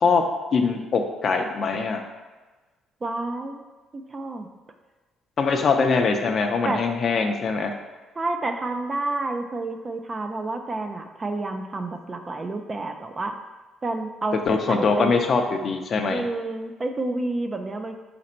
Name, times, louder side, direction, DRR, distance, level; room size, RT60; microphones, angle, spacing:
voice 1, 0.5-2.0 5.4-7.7 14.5-16.2, left 4 dB, 50° left, 5 dB, 0.5 m, -22 dB
voice 2, 3.0-3.6 3.9-4.5 6.6-6.8 8.2-13.4 13.8-15.1 16.0-18.0, right 2 dB, 30° right, 6 dB, 0.4 m, -29 dB
4.1 x 2.6 x 4.2 m, 1.3 s
cardioid pair, 95°, 0 cm